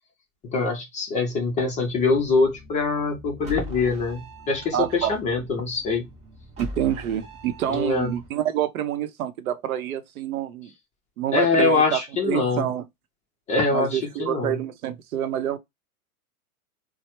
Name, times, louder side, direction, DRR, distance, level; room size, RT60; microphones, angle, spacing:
voice 1, 0.4-6.0 7.7-8.1 11.3-12.7 13.5-14.6, left 3 dB, 15° left, 0.5 m, -23 dB
sound 1, 1.6-8.3, equal, 15° right, 0.8 m, -42 dB
voice 2, 4.7-5.1 6.6-10.7 11.2-12.9 13.7-15.6, right 11 dB, 70° right, 0.7 m, -27 dB
3.0 x 2.0 x 2.9 m
hypercardioid pair, 115°, 45 cm